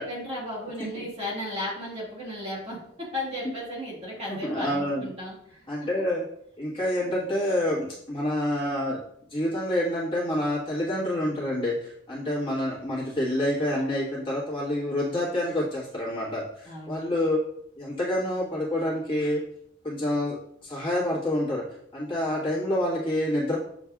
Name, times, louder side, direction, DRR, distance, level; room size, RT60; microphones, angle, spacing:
voice 1, 0.0-5.9 16.7-17.2, left 1 dB, 35° right, -6 dB, 1.6 m, -35 dB
voice 2, 4.3-5.1 5.7-6.2 6.6-9.0 9.3-17.4 17.8-19.4 19.8-20.4 20.6-21.6 21.9-23.6, left 1 dB, 30° left, -7 dB, 1.3 m, -27 dB
7.2 x 2.6 x 2.3 m, 0.71 s
head